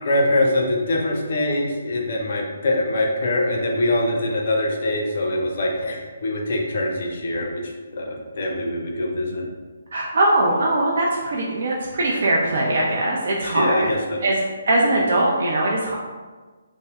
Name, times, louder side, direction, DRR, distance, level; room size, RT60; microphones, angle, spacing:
voice 1, 0.0-9.5 13.4-14.2, left 1 dB, 55° left, 0 dB, 0.6 m, -23 dB
voice 2, 9.9-13.9 14.2-14.4 14.7-15.9, right 1 dB, 60° right, -3 dB, 0.4 m, -21 dB
2.7 x 2.1 x 3.4 m, 1.4 s
figure-of-eight pair, 145°, 0 cm